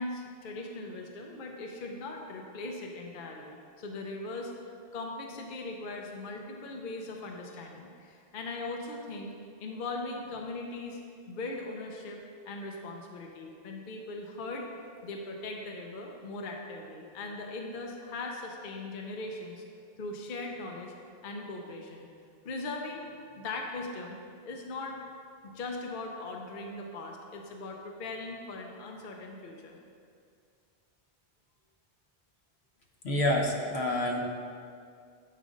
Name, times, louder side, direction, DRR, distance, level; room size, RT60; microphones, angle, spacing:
voice 1, 0.0-4.5 4.9-9.3 9.6-11.0 11.3-12.2 12.5-14.7 15.0-19.6 20.0-20.9 21.2-22.1 22.4-24.2 24.4-25.0 25.5-29.8 33.2-33.4, left 2 dB, 55° left, 1 dB, 0.8 m, -39 dB
voice 2, 33.0-34.2, left 1 dB, 70° left, 1 dB, 1.1 m, -27 dB
8.4 x 3.7 x 5.0 m, 2.3 s
omnidirectional pair, 1.1 m